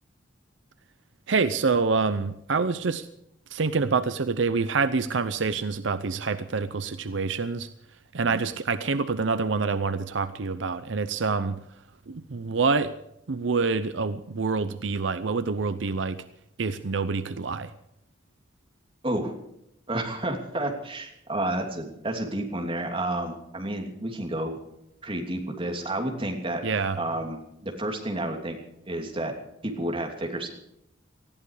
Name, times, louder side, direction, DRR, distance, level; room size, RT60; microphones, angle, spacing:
voice 1, 1.3-3.1 3.5-7.7 8.1-11.6 12.1-12.9 13.3-16.2 16.6-17.7 26.6-27.0, right 4 dB, 80° right, 12 dB, 0.7 m, -26 dB
voice 2, 19.9-24.6 25.0-26.6 27.0-28.6 28.8-29.3 29.6-30.5, right 1 dB, 30° right, 2 dB, 3.0 m, -30 dB
19.5 x 14.5 x 4.9 m, 0.78 s
head